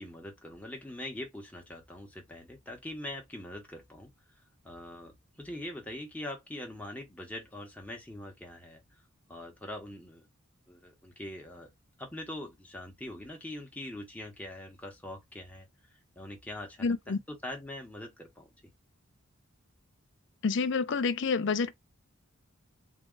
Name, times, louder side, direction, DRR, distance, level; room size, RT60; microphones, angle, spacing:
voice 1, 0.0-4.1 4.6-8.8 9.3-10.3 10.7-11.7 12.0-18.7, left 1 dB, 5° left, 1.1 m, -43 dB
voice 2, 16.8-17.2 20.4-21.7, left 4 dB, 55° left, 0.5 m, -28 dB
3.7 x 2.4 x 3.8 m
head